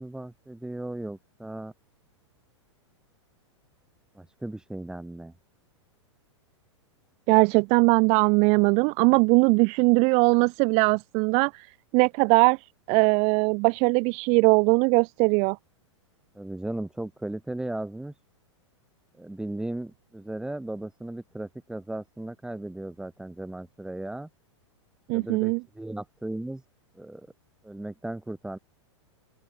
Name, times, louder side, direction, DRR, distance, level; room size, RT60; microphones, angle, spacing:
voice 1, 0.0-1.7 4.2-5.3 16.3-18.1 19.2-24.3 25.1-26.6 26.9-27.3 27.6-28.6, right 1 dB, 5° right, 5.4 m, -36 dB
voice 2, 7.3-11.7 11.9-12.6 12.9-15.6 25.1-25.6, right 32 dB, 45° right, 1.2 m, -20 dB
open air
hypercardioid pair, 110°, 16 cm